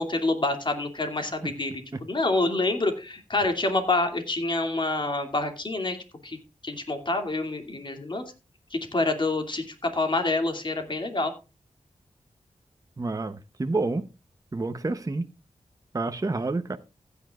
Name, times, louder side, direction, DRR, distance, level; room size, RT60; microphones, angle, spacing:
voice 1, 0.0-6.0 6.2-6.4 6.6-8.2 8.7-11.3, left 2 dB, 40° left, 2.6 m, -27 dB
voice 2, 13.0-14.1 14.5-15.2 15.9-16.8, right 3 dB, 30° right, 0.8 m, -28 dB
15.5 x 9.9 x 2.4 m
wide cardioid pair, 80°, 13 cm